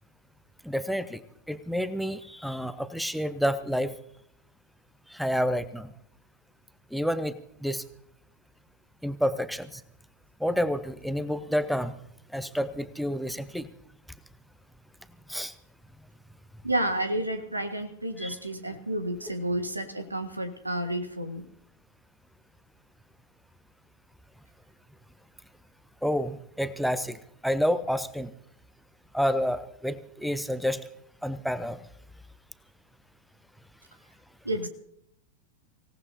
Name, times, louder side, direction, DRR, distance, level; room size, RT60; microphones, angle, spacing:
voice 1, 0.7-1.2 1.5-3.9 5.1-5.9 6.9-7.8 9.0-9.8 10.4-11.9 12.3-13.7 15.3-15.5 18.2-18.3 26.0-27.2 27.4-28.3 29.1-30.8 31.2-31.8, equal, ahead, 15 dB, 0.8 m, -29 dB
voice 2, 16.6-21.5 34.4-34.7, right 1 dB, 85° right, 9 dB, 1.6 m, -30 dB
25.0 x 17.5 x 2.8 m, 0.70 s
figure-of-eight pair, 90°, 0 cm